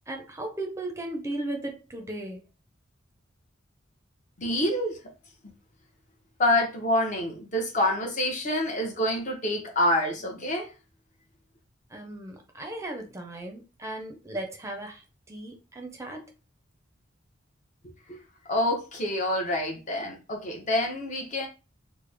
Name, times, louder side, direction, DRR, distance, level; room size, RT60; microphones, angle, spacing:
voice 1, 0.1-2.5 11.9-15.0 15.3-16.3, right 1 dB, 15° right, 0.6 m, -36 dB
voice 2, 4.4-5.0 6.4-10.7 18.1-18.2 18.5-21.5, left 1 dB, 40° left, 0.8 m, -27 dB
3.3 x 2.1 x 3.4 m
head